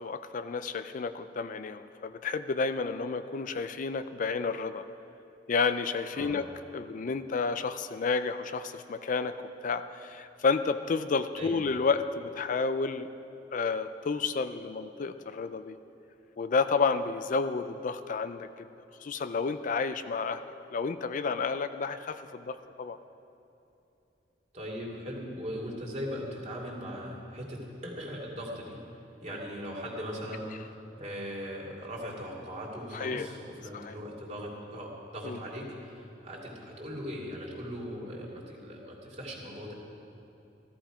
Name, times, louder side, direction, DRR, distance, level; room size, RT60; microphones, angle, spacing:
voice 1, 0.0-4.9 5.5-13.1 13.5-15.8 16.4-18.7 19.0-20.4 20.7-23.0 32.9-33.3 33.7-34.0 35.2-35.4, left 4 dB, 45° left, 10 dB, 0.4 m, -31 dB
voice 2, 6.1-6.5 11.4-11.7 24.5-28.8 29.2-39.7, equal, 40° right, -3 dB, 2.7 m, -39 dB
14.5 x 14.0 x 5.0 m, 2.9 s
head